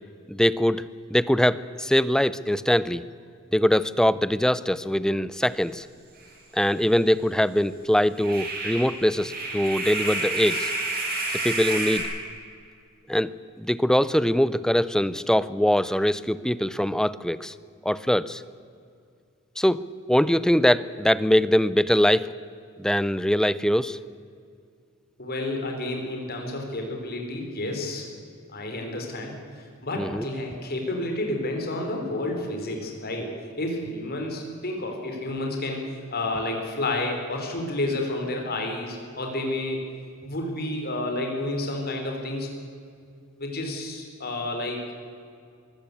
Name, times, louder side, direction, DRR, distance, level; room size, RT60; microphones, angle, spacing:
voice 1, 0.3-0.9 1.1-3.0 3.5-5.8 6.5-10.7 11.4-12.1 13.1-17.5 17.9-18.4 19.6-19.8 20.1-22.3 22.8-24.0 30.0-30.3, equal, 5° left, 17 dB, 0.5 m, -22 dB
sound 1, 6.2-6.3 6.6-6.7 8.2-12.0, right 2 dB, 45° right, 7.9 m, -29 dB
voice 2, 25.2-28.1 28.5-33.3 33.6-39.8 40.2-42.5 43.4-44.8, left 1 dB, 45° left, 2 dB, 4.4 m, -30 dB
23.0 x 16.0 x 8.5 m, 2.3 s
head